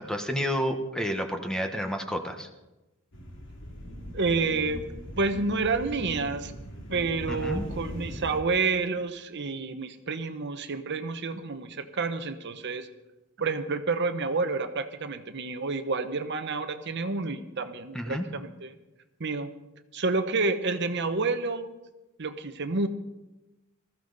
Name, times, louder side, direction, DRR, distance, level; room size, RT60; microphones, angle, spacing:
voice 1, 0.0-2.5 7.3-7.6 17.9-18.3, equal, 5° left, 5 dB, 1.1 m, -30 dB
sound 1, 3.1-8.4, equal, 60° left, 2.6 m, -39 dB
voice 2, 4.1-4.9 5.2-6.5 6.9-12.9 13.4-18.7 19.2-19.5 19.9-21.7 22.2-22.9, right 3 dB, 55° right, 9 dB, 0.9 m, -29 dB
20.0 x 14.0 x 4.0 m, 1.0 s
head